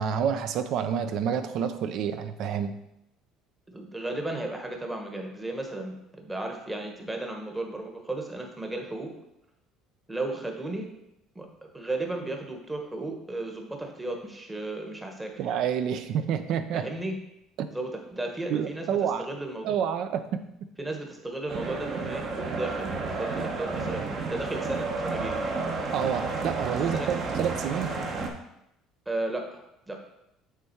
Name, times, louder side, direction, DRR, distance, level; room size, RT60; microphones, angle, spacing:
voice 1, 0.0-2.7 15.4-16.9 17.6-17.7 18.5-19.3 19.6-20.4 25.9-27.9, right 8 dB, 60° right, 10 dB, 0.6 m, -28 dB
voice 2, 3.7-9.1 10.1-10.9 11.3-11.5 11.7-15.3 16.7-17.2 17.7-18.9 19.2-19.7 20.8-25.5 26.9-27.1 29.1-29.6 29.9-30.0, right 2 dB, 10° right, 2 dB, 1.1 m, -34 dB
sound 1, 21.5-28.3, right 3 dB, 40° right, 1.0 m, -31 dB
8.2 x 3.6 x 4.5 m, 0.84 s
cardioid pair, 135°, 0 cm